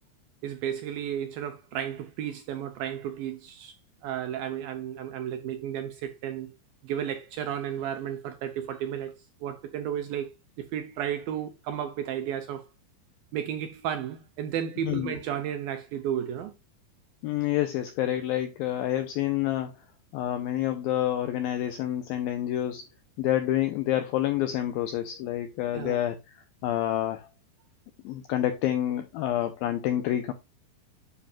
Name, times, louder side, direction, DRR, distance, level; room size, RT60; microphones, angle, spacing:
voice 1, 0.4-3.8 4.0-6.5 6.8-9.1 9.4-10.3 10.6-12.6 13.3-16.5 25.7-26.0, right 9 dB, 75° right, 2.2 m, -33 dB
voice 2, 14.8-15.2 17.2-19.7 20.1-22.8 23.2-26.2 26.6-27.3 28.0-30.3, left 12 dB, 90° left, 2.1 m, -28 dB
9.9 x 5.5 x 2.4 m
omnidirectional pair, 5.1 m